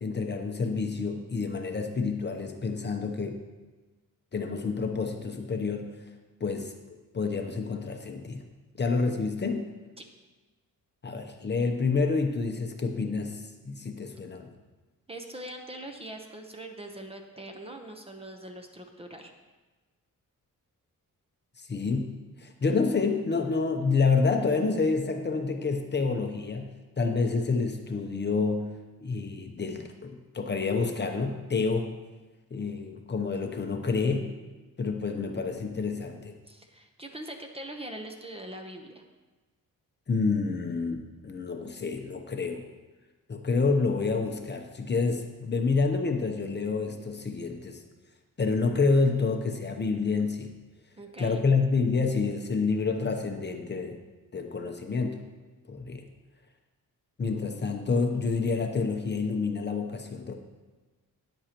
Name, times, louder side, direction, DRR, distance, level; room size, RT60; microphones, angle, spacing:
voice 1, 0.0-3.4 4.3-5.9 6.4-6.7 7.1-8.4 8.8-9.7 11.0-14.5 21.6-22.1 22.4-26.7 27.0-28.7 29.0-31.9 32.5-34.3 34.8-36.3 40.1-42.6 43.3-47.8 48.4-50.5 51.2-54.0 54.3-55.2 55.7-56.1 57.2-60.3, left 4 dB, 30° left, 4 dB, 0.8 m, -28 dB
voice 2, 15.1-19.3 36.5-39.0 51.0-51.4, right 1 dB, 15° right, 4 dB, 0.8 m, -42 dB
13.0 x 9.9 x 3.0 m, 1.2 s
wide cardioid pair, 150°, 33 cm